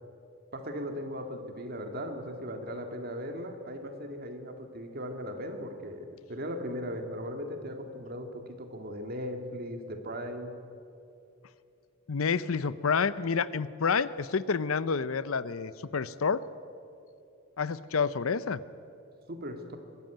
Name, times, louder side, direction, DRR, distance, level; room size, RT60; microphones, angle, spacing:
voice 1, 0.5-10.5 19.3-19.8, equal, 45° right, 5 dB, 2.1 m, -38 dB
voice 2, 12.1-16.4 17.6-18.6, left 5 dB, 80° left, 17 dB, 0.6 m, -29 dB
23.0 x 13.0 x 9.2 m, 2.6 s
head